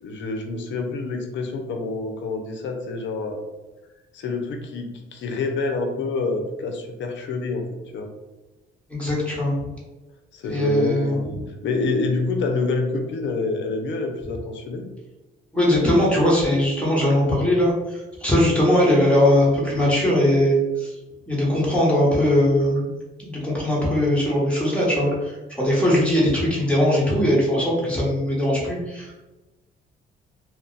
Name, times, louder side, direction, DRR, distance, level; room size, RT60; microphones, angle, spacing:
voice 1, 0.0-3.4 4.1-7.7 7.9-8.1 10.3-14.8, left 3 dB, 70° left, 4 dB, 0.6 m, -27 dB
voice 2, 8.9-9.6 10.5-11.4 15.5-20.9 21.3-29.1, left 1 dB, 5° left, -5 dB, 1.2 m, -20 dB
2.3 x 2.1 x 3.8 m, 1.1 s
cardioid pair, 90°, 20 cm